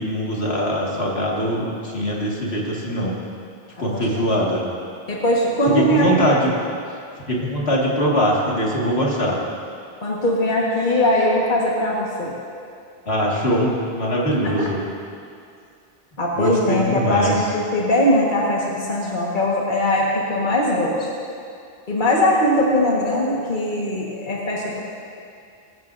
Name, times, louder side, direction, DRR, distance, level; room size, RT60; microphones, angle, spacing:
voice 1, 0.0-3.2 3.8-4.7 5.7-6.5 7.3-9.4 13.1-14.8 16.4-17.3, equal, 75° left, -4 dB, 2.4 m, -22 dB
voice 2, 3.9-4.3 5.1-6.4 10.0-12.3 14.4-14.5 16.2-21.1 21.9-24.8, left 1 dB, 50° left, -4 dB, 1.8 m, -20 dB
21.5 x 12.5 x 2.7 m, 2.4 s
omnidirectional pair, 1.1 m